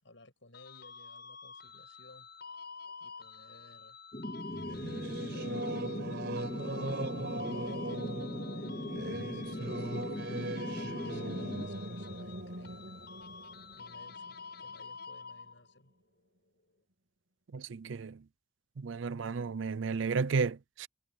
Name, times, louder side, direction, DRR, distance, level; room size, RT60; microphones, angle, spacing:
voice 1, 0.0-2.3 3.0-4.0 5.2-5.7 7.5-12.9 13.8-15.9, left 2 dB, 75° left, 7.9 m, -57 dB
sound 1, 0.5-15.8, left 5 dB, 60° left, 6.4 m, -49 dB
sound 2, 4.1-11.7, left 1 dB, 35° left, 4.1 m, -40 dB
Singing / Musical instrument, 4.5-14.6, right 1 dB, 65° right, 4.5 m, -39 dB
voice 2, 17.5-18.2 18.8-20.9, right 5 dB, 80° right, 0.5 m, -33 dB
head